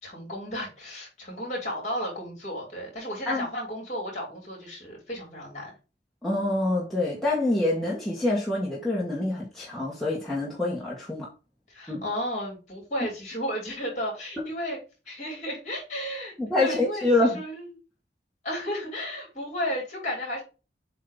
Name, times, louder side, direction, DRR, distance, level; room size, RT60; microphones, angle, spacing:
voice 1, 0.0-5.7 11.7-14.8 15.0-16.3 16.6-17.1 17.3-17.7 18.4-20.4, equal, 40° left, 3.5 m, -33 dB
voice 2, 6.2-11.3 11.9-12.0 16.4-17.4, left 2 dB, ahead, 1.5 m, -26 dB
7.5 x 2.9 x 5.1 m
head